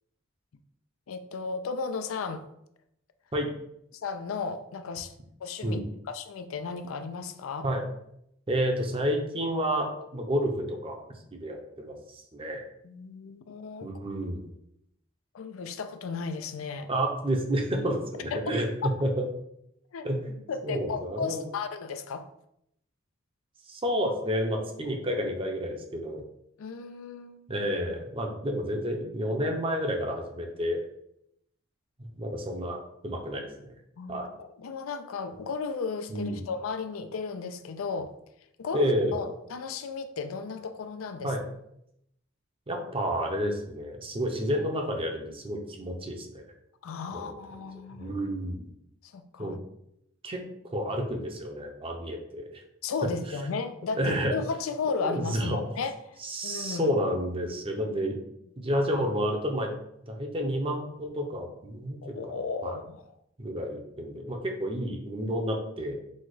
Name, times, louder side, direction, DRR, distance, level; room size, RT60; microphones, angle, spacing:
voice 1, 1.1-2.4 3.9-5.1 5.4-5.8 6.1-7.7 12.8-13.9 15.3-16.9 18.3-18.4 18.8-18.9 19.9-20.1 20.5-22.3 26.6-27.5 34.0-38.1 38.6-41.3 46.8-48.1 49.0-49.6 52.8-56.9 62.0-63.0, left 5 dB, 85° left, 9 dB, 0.4 m, -34 dB
voice 2, 8.5-11.0 11.3-12.6 13.8-14.5 16.9-19.3 20.0-20.4 20.6-21.4 23.7-26.2 27.5-30.8 32.0-33.7 34.1-34.3 36.1-36.4 38.7-39.2 41.2-41.4 42.7-46.4 47.1-47.6 48.0-48.7 49.4-49.6 50.2-50.4 50.7-52.6 53.9-54.4 55.0-55.6 56.2-58.2 58.6-59.7 60.1-62.8 63.4-66.0, equal, 25° right, 3 dB, 0.6 m, -30 dB
4.2 x 2.3 x 4.7 m, 0.77 s
head